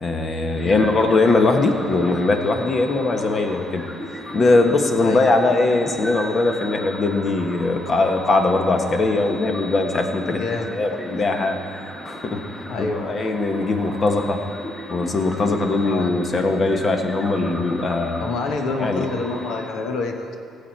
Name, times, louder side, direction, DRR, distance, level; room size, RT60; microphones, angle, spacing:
voice 1, 0.0-3.8 4.3-10.4 10.7-11.6 12.0-12.4 12.8-14.4 14.9-18.2 18.8-19.0, left 3 dB, 45° left, 5 dB, 1.4 m, -20 dB
sound 1, 0.5-19.7, equal, 25° left, 3.0 m, -35 dB
voice 2, 10.3-11.2 12.7-13.2 15.8-16.1 18.2-20.4, left 3 dB, 70° left, 4 dB, 1.2 m, -28 dB
17.0 x 7.2 x 4.7 m, 2.5 s
supercardioid pair, 60°, 0 cm